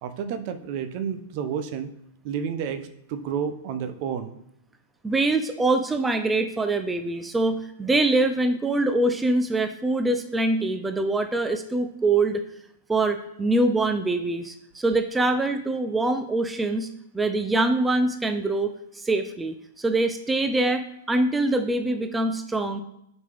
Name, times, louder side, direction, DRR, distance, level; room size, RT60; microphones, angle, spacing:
voice 1, 0.0-1.9 2.2-4.4, right 7 dB, 50° right, 10 dB, 0.7 m, -30 dB
voice 2, 5.0-12.4 12.9-16.9 17.1-22.8, right 2 dB, 10° right, 8 dB, 0.5 m, -24 dB
6.3 x 5.3 x 3.5 m, 0.78 s
hypercardioid pair, 115°, 0 cm